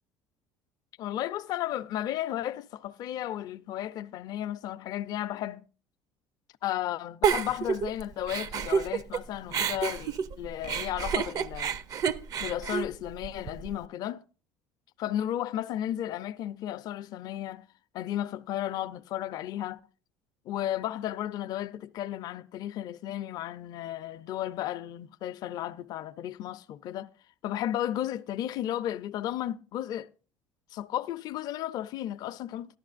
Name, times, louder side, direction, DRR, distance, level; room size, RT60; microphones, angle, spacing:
voice 1, 1.0-5.6 6.6-11.7 12.4-14.2 15.0-17.7 17.9-19.8 20.5-27.1 27.4-30.1 30.7-32.8, left 12 dB, 60° left, 0.5 m, -34 dB
Giggle, 7.2-9.2 9.5-13.7, right 7 dB, 50° right, 0.5 m, -29 dB
13.5 x 11.5 x 2.5 m
supercardioid pair, 95°, 8 cm